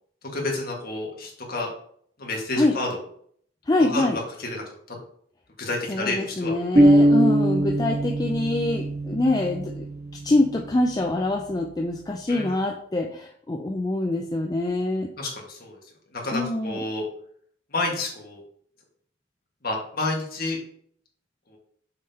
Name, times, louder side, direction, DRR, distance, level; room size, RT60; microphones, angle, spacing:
voice 1, 0.3-1.7 2.2-3.0 3.8-4.1 4.4-4.6 4.9-5.0 5.6-6.6 7.0-7.1 12.3-12.6 15.2-15.8 16.1-17.0 17.7-18.4 19.6-20.6 21.5-21.6, left 2 dB, 45° left, -1 dB, 1.7 m, -29 dB
voice 2, 3.7-4.2 5.9-9.8 10.2-15.1 16.3-16.8, left 2 dB, 20° left, 2 dB, 0.4 m, -25 dB
sound 1, 6.7-10.5, right 1 dB, 30° right, 1.3 m, -21 dB
6.4 x 5.6 x 2.9 m, 0.63 s
head